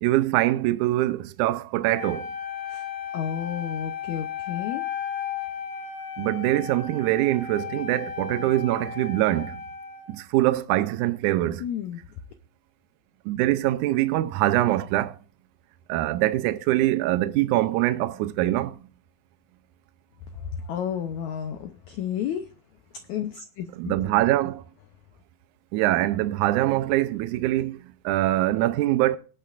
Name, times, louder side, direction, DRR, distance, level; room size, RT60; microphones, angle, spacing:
voice 1, 0.0-2.3 6.2-9.6 10.1-11.6 13.3-15.2 15.9-18.8 23.8-24.6 25.7-29.2, right 15 dB, 85° right, 1.7 m, -23 dB
Wind instrument woodwind instrument, 1.9-10.2, left 8 dB, 25° left, 4.8 m, -35 dB
voice 2, 3.1-4.8 11.6-12.0 20.3-22.5 23.1-23.9, left 9 dB, 85° left, 1.6 m, -31 dB
19.5 x 8.7 x 2.5 m
omnidirectional pair, 4.3 m